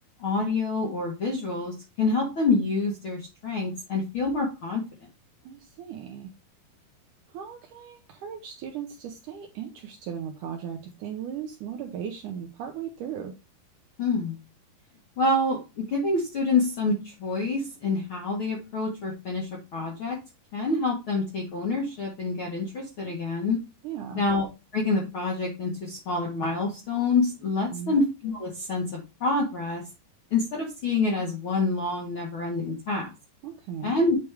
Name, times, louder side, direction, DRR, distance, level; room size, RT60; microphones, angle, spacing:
voice 1, 0.2-4.8 14.0-14.4 15.2-20.2 20.5-23.6 24.1-24.5 24.7-29.8 30.3-33.1 33.8-34.2, left 3 dB, 60° left, -1 dB, 1.3 m, -27 dB
voice 2, 5.4-6.3 7.3-13.3 23.8-24.2 27.7-28.0 33.4-33.9, right 8 dB, 75° right, 3 dB, 1.9 m, -37 dB
8.4 x 3.4 x 4.6 m, 0.27 s
omnidirectional pair, 4.4 m